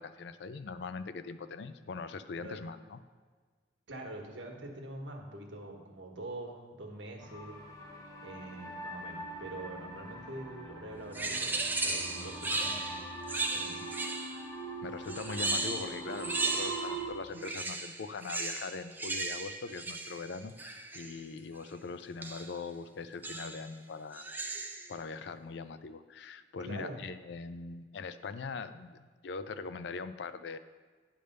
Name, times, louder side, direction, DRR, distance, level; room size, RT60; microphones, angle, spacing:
voice 1, 0.0-3.0 14.0-14.1 14.8-24.3 24.9-30.6, left 4 dB, 65° left, 12 dB, 0.4 m, -41 dB
voice 2, 3.9-7.6 8.2-12.9 13.5-13.8 26.6-27.0, right 2 dB, 80° right, 1 dB, 1.3 m, -44 dB
sound 1, 7.2-17.1, right 2 dB, 20° left, 1.0 m, -43 dB
sound 2, 11.1-14.5 15.1-17.1 17.3-21.2 22.2-22.6 23.2-23.7 24.1-24.9, right 3 dB, 10° right, 0.5 m, -36 dB
10.0 x 3.4 x 6.6 m, 1.5 s
head